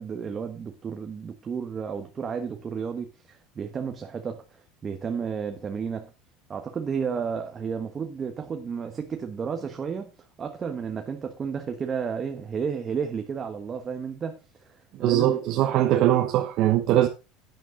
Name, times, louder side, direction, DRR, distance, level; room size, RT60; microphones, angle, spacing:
voice 1, 0.0-6.1 6.5-10.1 10.4-15.4, right 6 dB, 25° right, 1.2 m, -32 dB
voice 2, 15.0-17.1, right 12 dB, 55° right, 1.1 m, -21 dB
11.0 x 9.3 x 3.8 m
supercardioid pair, 130°, 0 cm